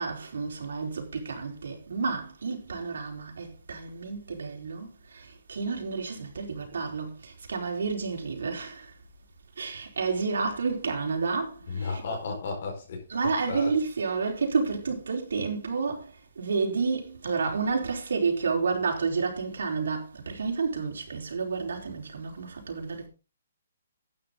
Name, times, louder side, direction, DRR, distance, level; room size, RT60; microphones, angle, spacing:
voice 1, 0.0-8.9 9.6-12.0 13.1-23.1, right 4 dB, 75° right, 4.5 m, -30 dB
voice 2, 11.7-13.0 13.5-13.7, left 4 dB, 50° left, 4.9 m, -33 dB
12.5 x 9.4 x 3.9 m
hypercardioid pair, 165°, 0 cm